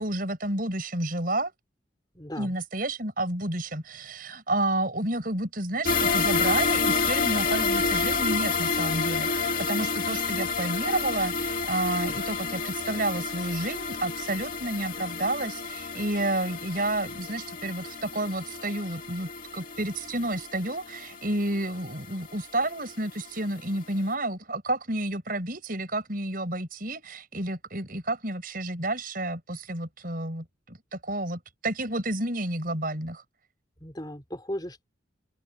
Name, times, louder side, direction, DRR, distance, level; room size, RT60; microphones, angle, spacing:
voice 1, 0.0-1.5 2.4-33.2, right 1 dB, 45° right, 6.5 m, -30 dB
voice 2, 2.2-2.5 33.8-34.8, equal, 20° left, 5.1 m, -36 dB
sound 1, 5.8-22.9 23.3-23.4 23.8-23.9, left 4 dB, 45° left, 2.5 m, -29 dB
open air
head